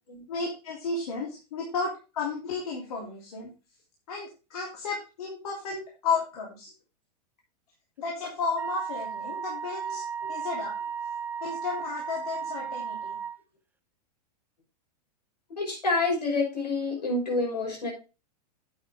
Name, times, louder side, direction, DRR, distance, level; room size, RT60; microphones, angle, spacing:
voice 1, 0.3-3.5 4.1-5.8 6.0-6.7 8.0-10.0 10.3-10.8 11.4-13.2, left 4 dB, 60° left, -2 dB, 3.1 m, -33 dB
Wind instrument woodwind instrument, 8.6-13.4, right 7 dB, 10° right, 0.7 m, -35 dB
voice 2, 15.6-17.9, left 3 dB, 80° left, 1 dB, 5.9 m, -28 dB
9.3 x 8.8 x 3.6 m, 0.30 s
figure-of-eight pair, 95°, 21 cm